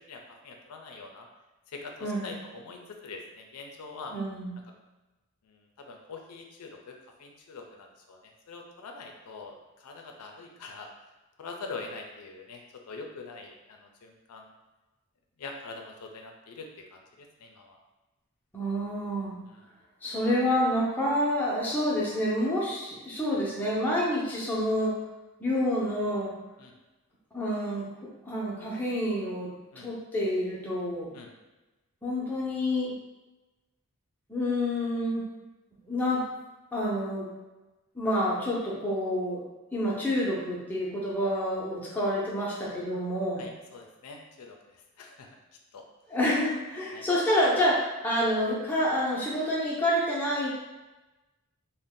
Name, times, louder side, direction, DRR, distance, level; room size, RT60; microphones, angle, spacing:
voice 1, 0.1-1.3 1.7-4.1 5.4-10.9 11.4-14.5 15.4-16.7 16.9-17.8 19.5-19.6 26.6-26.7 29.7-29.9 31.1-31.3 43.4-45.3 45.7-45.8 46.9-47.1, left 4 dB, 85° left, 2 dB, 0.4 m, -44 dB
voice 2, 4.1-4.5 18.5-19.3 20.0-24.9 25.4-26.3 27.3-27.9 28.3-29.5 29.8-31.1 32.0-32.9 34.3-35.2 35.9-36.2 36.7-37.3 37.9-39.4 39.7-43.4 46.1-50.5, equal, 10° left, -6 dB, 0.6 m, -28 dB
2.6 x 2.1 x 3.6 m, 1.1 s
head